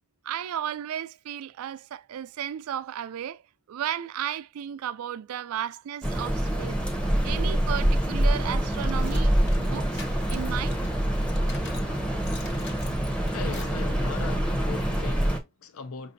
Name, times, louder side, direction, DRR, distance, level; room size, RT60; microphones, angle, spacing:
voice 1, 0.2-3.4 3.7-6.8 7.2-10.0 10.3-10.8, right 10 dB, 90° right, 0.3 m, -34 dB
sound 1, 6.0-15.4, right 1 dB, 5° left, 0.7 m, -26 dB
sound 2, 8.3-11.9 12.2-13.8, left 3 dB, 55° left, 1.1 m, -46 dB
voice 2, 13.3-16.1, left 6 dB, 70° left, 0.4 m, -39 dB
5.8 x 2.7 x 2.6 m
head